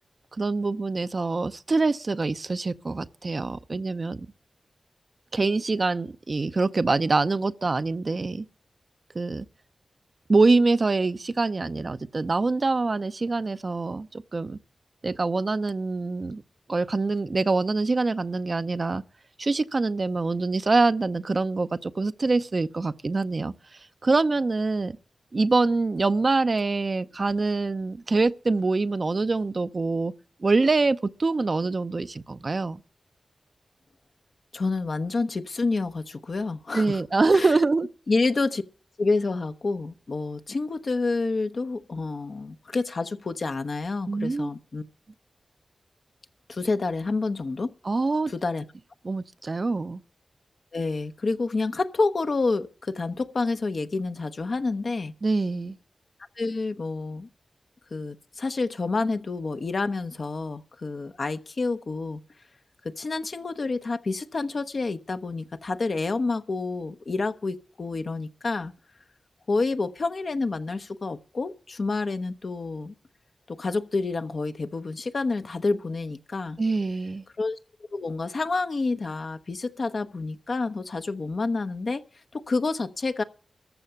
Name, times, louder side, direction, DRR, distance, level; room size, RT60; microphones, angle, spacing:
voice 1, 0.4-4.3 5.3-8.4 9.1-9.5 10.3-14.6 15.0-16.4 16.7-19.0 19.4-23.5 24.0-25.0 25.3-30.1 30.4-32.8 36.7-37.9 44.1-44.5 47.8-48.3 49.0-50.0 55.2-55.8 76.6-77.2, right 3 dB, 50° right, 0.6 m, -25 dB
voice 2, 34.5-37.0 37.3-37.5 38.1-38.6 39.0-44.8 46.5-47.7 48.3-48.6 50.7-55.1 56.4-57.3 57.9-62.2 62.8-68.7 69.5-72.9 73.5-76.6 77.4-77.6 77.9-82.0 82.3-83.2, left 3 dB, 65° left, 0.9 m, -28 dB
14.0 x 5.6 x 9.7 m
cardioid pair, 45°, 0 cm